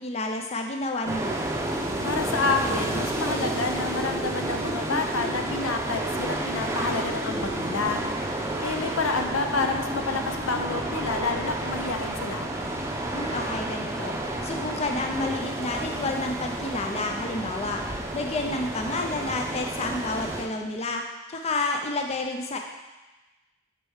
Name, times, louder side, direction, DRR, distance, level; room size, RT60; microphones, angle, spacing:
voice 1, 0.0-1.4 13.1-17.8 18.1-21.0 21.3-22.6, left 2 dB, 30° left, 3 dB, 0.5 m, -30 dB
sound 1, 1.1-20.4, right 1 dB, 15° right, 0.7 m, -30 dB
voice 2, 2.0-8.0 8.6-12.5, left 4 dB, 75° left, 5 dB, 0.7 m, -29 dB
6.8 x 4.4 x 6.3 m, 1.1 s
head